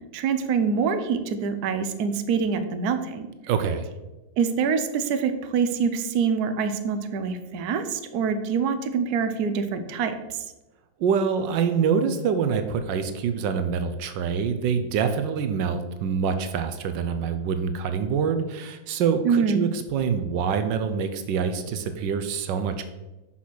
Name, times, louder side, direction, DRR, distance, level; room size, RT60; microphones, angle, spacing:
voice 1, 0.1-3.2 4.4-10.4 19.2-19.6, right 6 dB, 65° right, 9 dB, 1.2 m, -25 dB
voice 2, 3.5-3.9 11.0-22.9, right 6 dB, 85° right, 9 dB, 1.3 m, -25 dB
6.2 x 5.7 x 6.1 m, 1.1 s
omnidirectional pair, 2.0 m